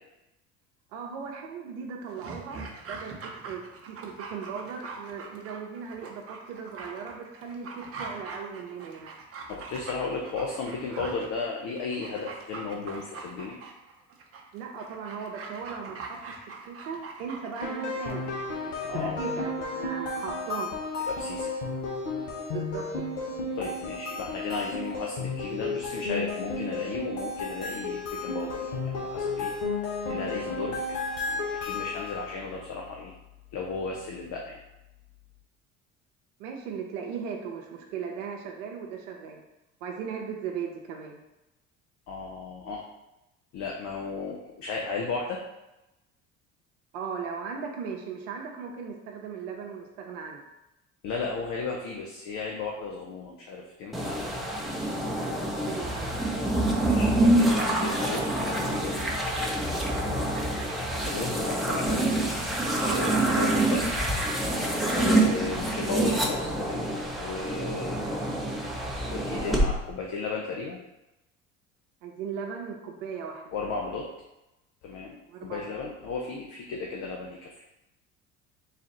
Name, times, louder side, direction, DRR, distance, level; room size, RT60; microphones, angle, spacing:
voice 1, 0.9-3.1 3.4-3.6 3.9-9.1 14.5-16.4 16.7-18.2 18.6-20.7 22.5-23.2 36.4-39.4 39.8-41.2 46.9-50.4 55.6-56.1 72.0-73.5 75.3-75.9, right 6 dB, 65° right, 1 dB, 0.7 m, -37 dB
Dog, 2.1-18.3 18.6-18.7, right 4 dB, 35° right, 0.8 m, -43 dB
voice 2, 9.5-13.6 18.9-19.1 21.1-21.5 23.5-29.5 30.1-30.8 31.3-33.1 33.5-34.6 42.1-42.8 43.5-45.4 51.0-54.5 56.8-59.1 59.5-59.7 60.1-62.4 62.8-63.9 64.4-66.9 67.2-68.0 69.1-70.8 73.5-74.1 74.8-77.6, left 4 dB, 50° left, -1 dB, 0.7 m, -35 dB
sound 1, 17.6-32.3, left 3 dB, 70° left, 1.0 m, -33 dB
sound 2, 53.9-69.7, right 1 dB, ahead, 0.7 m, -26 dB
4.0 x 2.5 x 4.0 m, 0.95 s
hypercardioid pair, 60°, 39 cm